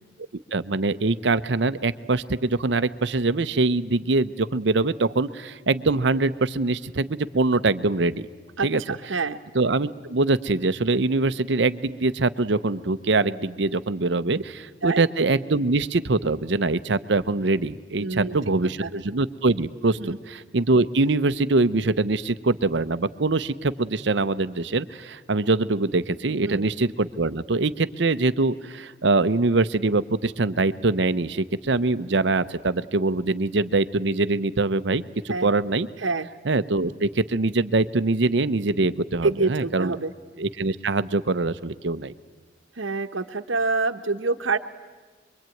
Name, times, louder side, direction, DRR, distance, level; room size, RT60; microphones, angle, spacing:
voice 1, 0.5-8.3 8.6-8.8 9.5-35.9 36.4-39.9 40.4-42.1, right 3 dB, 65° right, 13 dB, 0.7 m, -23 dB
voice 2, 8.6-9.4 14.8-15.0 18.0-18.4 18.6-18.9 20.0-20.2 26.4-26.7 35.3-35.5 36.0-36.3 39.2-40.1 42.8-44.6, right 3 dB, 85° right, 9 dB, 1.0 m, -26 dB
25.5 x 23.0 x 9.1 m, 1.4 s
head